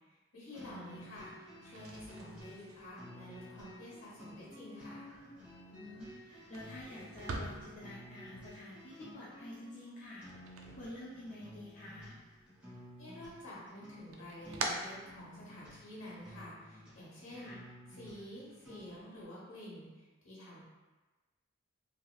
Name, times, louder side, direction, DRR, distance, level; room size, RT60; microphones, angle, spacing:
voice 1, 0.0-5.0 13.0-17.5 17.9-20.6, left 1 dB, 75° left, -6 dB, 1.1 m, -49 dB
sound 1, 0.5-19.1, equal, 5° right, 0.9 m, -53 dB
voice 2, 0.6-1.0 5.7-10.3 10.7-12.2 17.3-17.6, left 1 dB, 35° left, -7 dB, 0.4 m, -49 dB
sound 2, 1.6-11.6 11.9-12.8 13.2-15.8, right 3 dB, 80° right, 0.4 m, -46 dB
3.0 x 2.8 x 2.3 m, 1.2 s
head